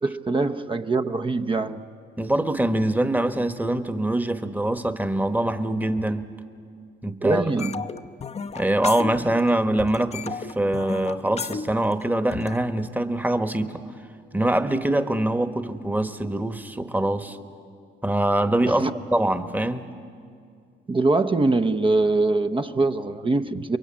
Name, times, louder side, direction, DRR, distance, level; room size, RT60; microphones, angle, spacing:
voice 1, 0.0-1.8 7.2-7.8 18.6-18.9 20.9-23.8, right 3 dB, 25° right, 0.8 m, -23 dB
voice 2, 2.2-6.3 7.0-7.4 8.5-13.8 14.3-17.4 18.0-19.9, right 1 dB, 10° right, 1.3 m, -24 dB
sound 1, 7.6-9.5 9.8-12.6, left 5 dB, 35° left, 0.7 m, -34 dB
28.5 x 23.0 x 8.8 m
cardioid pair, 90°, 20 cm